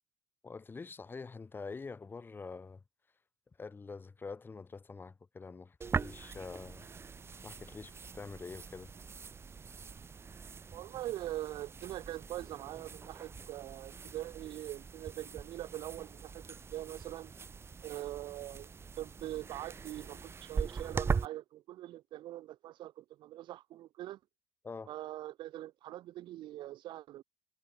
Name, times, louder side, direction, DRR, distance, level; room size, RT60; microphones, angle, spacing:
voice 1, 0.4-2.8 3.6-6.9 7.4-8.9 24.6-24.9, left 4 dB, 25° left, 6.6 m, -46 dB
sound 1, 5.8-21.3, right 5 dB, 30° right, 3.0 m, -41 dB
voice 2, 10.7-17.3 17.8-18.7 19.0-24.2 24.9-27.2, right 14 dB, 60° right, 2.9 m, -43 dB
supercardioid pair, 90°, 9 cm